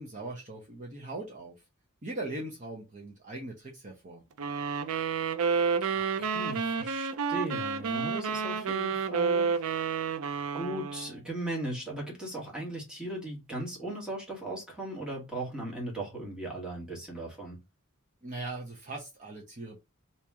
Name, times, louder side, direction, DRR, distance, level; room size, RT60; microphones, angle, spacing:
voice 1, 0.0-1.5 2.0-4.2 18.2-19.8, right 2 dB, 35° right, 0.8 m, -40 dB
sound 1, 4.4-11.2, right 5 dB, 65° right, 0.4 m, -30 dB
voice 2, 5.9-9.9 10.5-17.6, right 1 dB, 5° right, 1.4 m, -38 dB
3.0 x 2.9 x 3.5 m
head